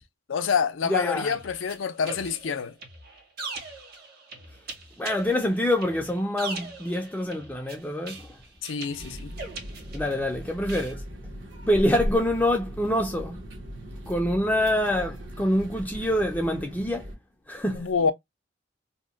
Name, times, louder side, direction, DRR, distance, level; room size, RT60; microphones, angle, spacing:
voice 1, 0.3-2.7 8.6-9.4 17.7-18.1, left 6 dB, 80° left, 0.4 m, -27 dB
voice 2, 0.8-1.4 5.0-8.3 9.9-11.0 11.7-13.4 14.1-17.1 17.5-18.1, left 1 dB, 10° left, 0.4 m, -26 dB
sound 1, 1.0-10.3 10.7-10.9, right 3 dB, 55° right, 1.0 m, -41 dB
sound 2, 9.0-17.1, equal, 70° right, 1.0 m, -40 dB
2.8 x 2.1 x 3.8 m
head